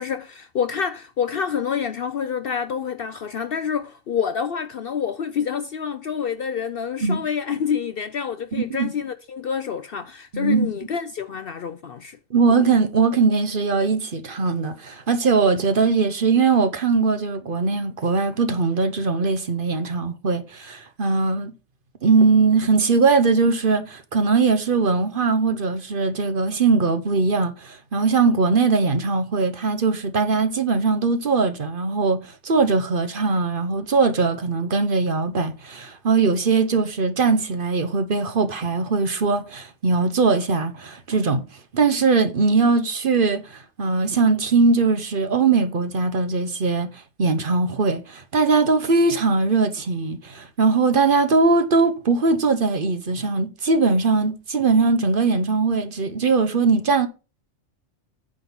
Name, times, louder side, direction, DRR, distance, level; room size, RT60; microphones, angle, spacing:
voice 1, 0.0-12.2, left 7 dB, 60° left, 0.6 m, -27 dB
voice 2, 8.5-8.9 10.3-10.7 12.3-21.5 22.0-41.4 41.7-57.1, right 4 dB, 45° right, 1.0 m, -20 dB
9.8 x 3.8 x 7.0 m
omnidirectional pair, 1.4 m